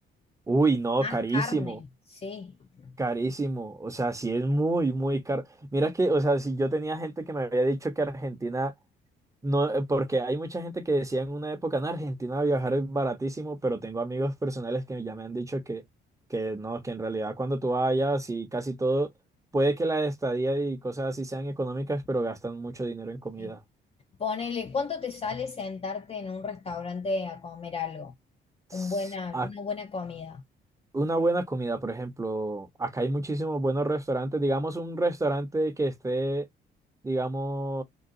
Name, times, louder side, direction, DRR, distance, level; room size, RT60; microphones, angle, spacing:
voice 1, 0.5-1.8 3.0-8.7 9.4-15.8 16.3-19.1 19.5-23.6 28.7-29.0 29.3-29.5 30.9-36.5 37.0-37.8, right 2 dB, 15° right, 0.7 m, -28 dB
voice 2, 1.0-2.6 2.8-2.9 23.4-23.5 24.2-28.1 28.7-30.4, left 4 dB, 30° left, 0.5 m, -33 dB
3.8 x 2.3 x 2.5 m
cardioid pair, 90°, 20 cm